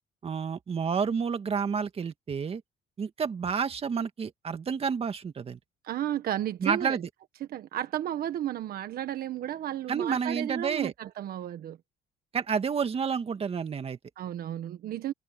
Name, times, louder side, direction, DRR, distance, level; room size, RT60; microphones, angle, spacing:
voice 1, 0.2-2.6 3.0-5.6 6.6-7.1 9.9-10.9 12.3-14.0, right 6 dB, 35° right, 2.0 m, -30 dB
voice 2, 5.8-7.0 7.5-11.8 14.2-15.1, right 11 dB, 65° right, 1.4 m, -33 dB
cardioid pair, 110°, 17 cm